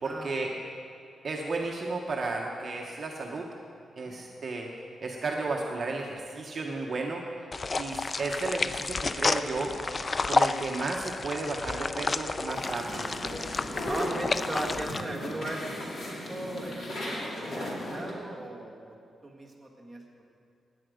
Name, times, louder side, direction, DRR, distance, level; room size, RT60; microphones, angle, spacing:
voice 1, 0.0-0.5 1.2-3.4 4.0-4.7 5.0-7.2 7.8-9.7 10.3-13.1, right 3 dB, 35° right, 0 dB, 1.0 m, -33 dB
sound 1, 7.5-15.0, left 3 dB, 25° left, 0.3 m, -31 dB
sound 2, 12.5-18.1, left 1 dB, 45° left, 2.5 m, -36 dB
voice 2, 13.9-18.9 19.2-20.2, right 1 dB, ahead, -4 dB, 1.7 m, -38 dB
16.0 x 10.0 x 5.0 m, 2.4 s
wide cardioid pair, 165°, 0 cm